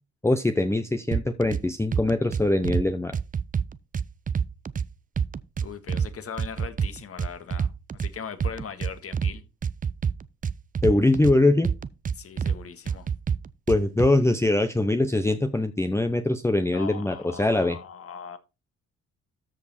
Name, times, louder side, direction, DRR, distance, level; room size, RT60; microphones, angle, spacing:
voice 1, 0.2-3.1 10.8-11.7 13.7-17.8, left 2 dB, 10° left, 0.8 m, -22 dB
sound 1, 1.1-1.6 1.9-2.8 3.1-4.9 5.2-6.1 6.4-8.1 8.4-9.3 9.6-11.3 11.6-12.6 12.9-14.1, right 7 dB, 25° right, 0.5 m, -27 dB
voice 2, 5.6-9.4 12.1-13.1 16.7-18.4, left 7 dB, 50° left, 1.7 m, -39 dB
13.5 x 5.2 x 4.3 m
cardioid pair, 90°, 30 cm